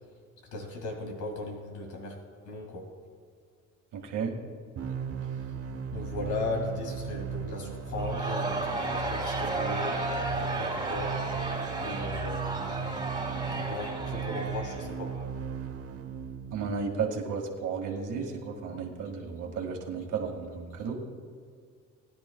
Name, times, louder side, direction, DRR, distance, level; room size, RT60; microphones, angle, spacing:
voice 1, 0.5-2.1 2.4-2.9 5.9-11.2 11.8-15.1 18.7-18.8, left 2 dB, 75° left, 2 dB, 2.1 m, -37 dB
voice 2, 3.9-4.3 16.5-21.0, right 5 dB, 85° right, 1 dB, 2.0 m, -33 dB
sound 1, 4.8-16.7, right 6 dB, 50° right, 1.0 m, -36 dB
Crowd, 8.0-15.2, right 2 dB, 15° right, 2.2 m, -33 dB
20.5 x 10.5 x 2.3 m, 2.2 s
cardioid pair, 90°, 30 cm